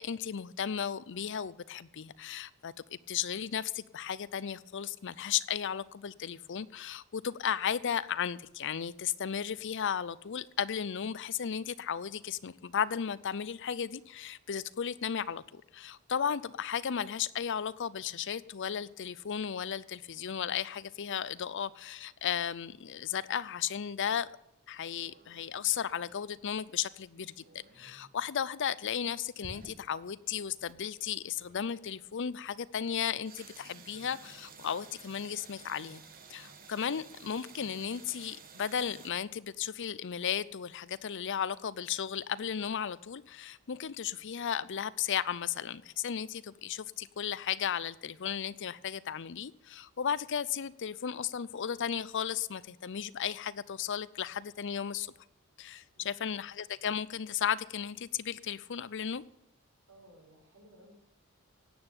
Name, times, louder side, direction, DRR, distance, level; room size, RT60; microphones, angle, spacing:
voice 1, 0.0-24.3 24.7-27.4 27.8-36.0 36.3-55.1 55.6-59.2, left 8 dB, 60° left, 0.5 m, -35 dB
sound 1, 25.0-26.3 27.1-28.1 28.8-30.8 31.3-31.7 33.2-39.1, right 4 dB, 40° right, 1.6 m, -53 dB
voice 2, 55.9-56.3 59.9-61.0, equal, 65° right, 5.6 m, -58 dB
17.0 x 8.7 x 8.8 m
head